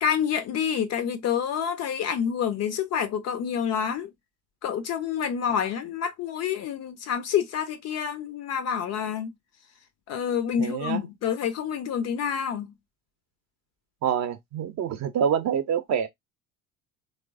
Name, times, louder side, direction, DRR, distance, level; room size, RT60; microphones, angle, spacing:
voice 1, 0.0-4.1 4.6-9.3 10.1-12.7, left 8 dB, 35° left, 0.5 m, -28 dB
voice 2, 10.6-11.0 14.0-16.1, right 8 dB, 40° right, 0.6 m, -26 dB
3.1 x 2.0 x 2.4 m
hypercardioid pair, 65°, 44 cm